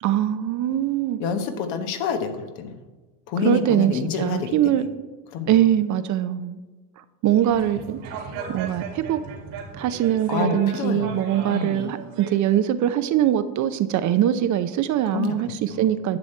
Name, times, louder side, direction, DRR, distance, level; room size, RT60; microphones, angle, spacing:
voice 1, 0.0-1.2 3.4-3.9 4.2-4.9 5.5-6.6 7.2-8.0 8.5-9.2 9.7-16.2, right 11 dB, 45° right, 0.6 m, -22 dB
voice 2, 1.2-2.7 3.3-4.8 5.3-5.5 10.3-11.2 11.5-11.9 15.1-15.9, left 5 dB, 75° left, 1.2 m, -28 dB
sound 1, 7.4-12.3, right 5 dB, 70° right, 2.5 m, -36 dB
10.5 x 6.3 x 4.4 m
supercardioid pair, 105°, 41 cm